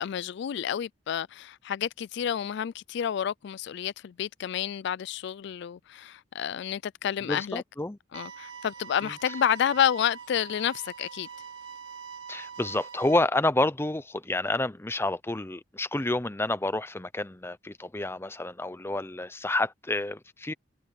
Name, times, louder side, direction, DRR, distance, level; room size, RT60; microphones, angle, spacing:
voice 1, 0.0-7.6 8.1-11.3, left 9 dB, 65° left, 0.3 m, -29 dB
voice 2, 7.3-8.0 12.3-20.5, left 2 dB, 15° left, 0.7 m, -29 dB
sound 1, 8.1-13.2, right 6 dB, 75° right, 5.4 m, -43 dB
head